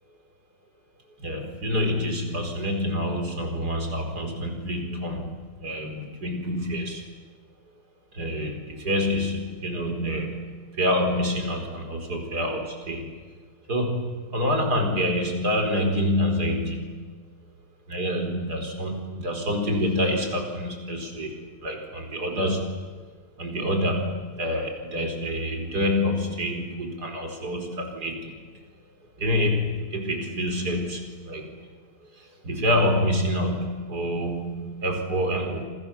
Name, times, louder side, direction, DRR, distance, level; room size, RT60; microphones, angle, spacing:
voice 1, 1.2-7.1 8.1-13.1 13.7-17.1 17.9-22.7 23.4-28.3 29.2-31.5 32.4-35.7, equal, 55° right, 3 dB, 5.2 m, -27 dB
28.5 x 26.0 x 7.3 m, 1.5 s
omnidirectional pair, 2.0 m